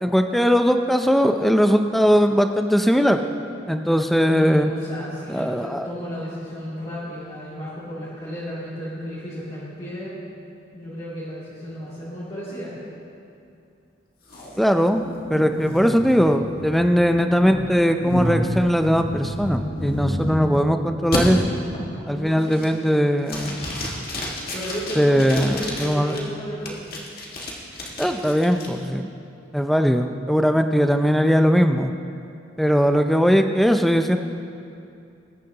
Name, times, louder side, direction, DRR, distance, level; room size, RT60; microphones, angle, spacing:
voice 1, 0.0-3.2 3.7-4.7 5.3-5.9 14.6-15.0 15.3-21.4 22.1-23.6 25.0-26.2 28.0-29.1 29.5-31.9 32.6-34.2, equal, ahead, 6 dB, 0.4 m, -19 dB
voice 2, 4.3-10.1 10.7-12.8 22.1-22.8 24.5-26.9, equal, 35° left, -12 dB, 2.7 m, -33 dB
sound 1, 14.3-20.6 21.1-21.2 21.7-22.1 22.5-22.9 23.3-26.2 26.7-28.7, equal, 50° left, 1.8 m, -30 dB
20.5 x 10.5 x 2.9 m, 2.5 s
head